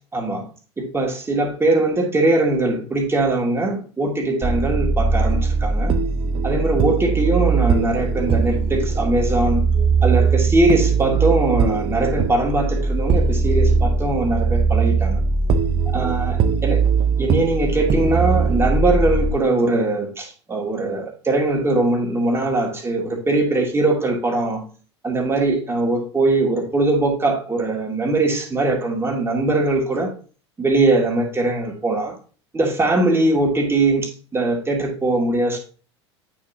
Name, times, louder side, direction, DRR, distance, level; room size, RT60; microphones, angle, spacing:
voice 1, 0.1-0.5 0.8-6.0 6.4-9.7 10.0-15.2 15.9-16.8 17.2-24.7 25.0-30.2 30.6-32.2 32.5-35.6, right 2 dB, 15° right, 0 dB, 2.3 m, -21 dB
sound 1, 4.4-19.3, right 4 dB, 40° right, 0.8 m, -20 dB
8.5 x 5.6 x 2.8 m, 0.38 s
hypercardioid pair, 80°, 15 cm